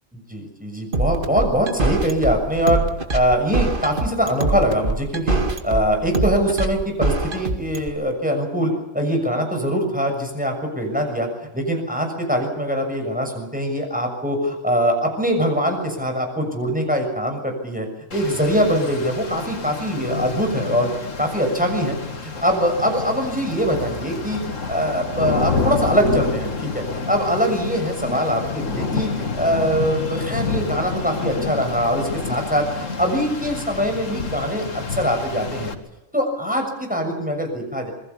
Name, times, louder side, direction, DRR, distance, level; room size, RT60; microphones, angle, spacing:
voice 1, 0.1-2.8 3.1-5.4 5.6-11.3 11.5-20.9 21.2-22.0 22.4-24.4 24.7-29.1 29.4-35.7 36.1-37.9, equal, 5° right, 3 dB, 6.7 m, -22 dB
sound 1, 0.9-7.9, right 2 dB, 45° right, 2.2 m, -23 dB
Rain, 18.1-35.7, left 4 dB, 80° left, 2.4 m, -28 dB
27.5 x 21.0 x 7.1 m, 0.98 s
omnidirectional pair, 1.3 m